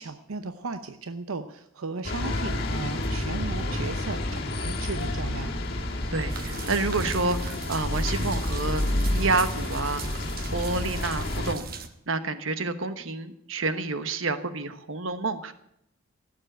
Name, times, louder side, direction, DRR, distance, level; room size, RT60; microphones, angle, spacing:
voice 1, 0.0-5.5, right 3 dB, 90° right, 9 dB, 0.8 m, -36 dB
sound 1, 2.0-11.5, left 1 dB, 45° left, 2.0 m, -29 dB
voice 2, 6.1-8.8 9.1-10.2 10.5-11.6 12.1-15.5, right 3 dB, 70° right, 10 dB, 1.2 m, -29 dB
sound 2, 6.3-11.9, right 4 dB, 45° right, 1.1 m, -39 dB
17.0 x 7.4 x 9.0 m, 0.77 s
head